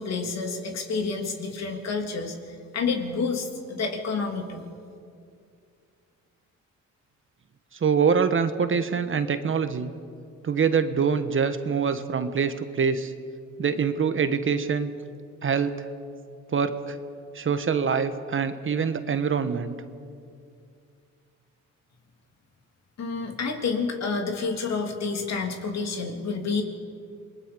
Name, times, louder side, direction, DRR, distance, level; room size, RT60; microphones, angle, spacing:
voice 1, 0.0-4.6 23.0-26.6, left 4 dB, 60° left, 3 dB, 3.2 m, -29 dB
voice 2, 7.8-9.9 10.4-13.1 13.6-14.9 15.4-15.7 16.5-17.0 17.3-19.7, right 6 dB, 40° right, 10 dB, 1.3 m, -24 dB
28.0 x 21.0 x 5.3 m, 2.4 s
cardioid pair, 90°, 30 cm